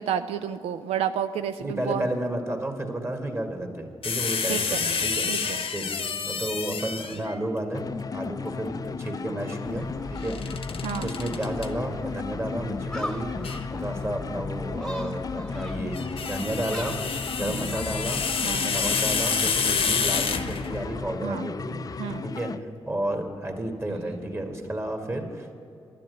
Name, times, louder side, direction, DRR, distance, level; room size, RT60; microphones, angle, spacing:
voice 1, 0.0-2.1 4.5-4.9 5.3-5.6 10.8-11.1 17.5-17.7 18.4-18.7 21.2-21.5 22.0-22.2, right 9 dB, 90° right, 10 dB, 0.4 m, -30 dB
voice 2, 1.6-5.3 5.7-5.9 6.2-7.8 8.1-10.6 11.0-13.3 13.7-17.0 17.4-25.5, right 1 dB, 25° right, 3 dB, 2.1 m, -32 dB
sound 1, 4.0-7.3 10.2-11.7 13.4-13.6 15.7-20.9, left 6 dB, 65° left, 0.8 m, -28 dB
sound 2, 7.7-22.6, left 5 dB, 40° left, 0.4 m, -35 dB
Gull seagull, 9.6-21.1, left 1 dB, 5° left, 1.2 m, -40 dB
11.5 x 7.5 x 9.2 m, 2.5 s
cardioid pair, 55°, 10 cm